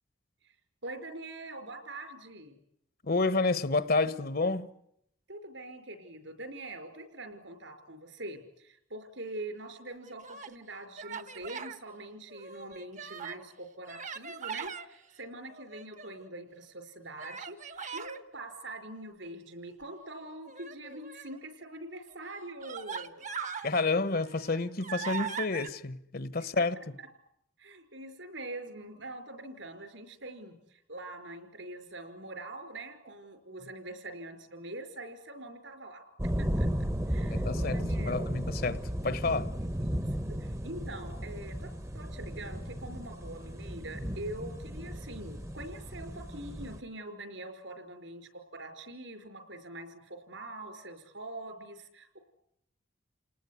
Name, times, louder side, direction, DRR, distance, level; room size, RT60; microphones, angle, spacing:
voice 1, 0.8-2.6 5.3-23.3 26.6-26.7 27.0-27.1 27.6-36.0 36.4-38.2 39.8-40.0 40.3-52.2, right 2 dB, 70° right, 5.0 m, -44 dB
voice 2, 3.0-4.7 23.6-26.8 37.3-39.5, left 3 dB, 50° left, 1.1 m, -29 dB
Human voice, 9.9-10.6 11.0-11.8 12.3-13.4 13.9-14.9 15.5-16.3 17.2-18.2 20.5-21.4 22.1-22.2 22.6-23.7 24.2-25.7, right 6 dB, 40° right, 1.2 m, -40 dB
sound 1, 36.2-46.8, equal, 15° right, 1.0 m, -35 dB
29.5 x 19.5 x 9.6 m
head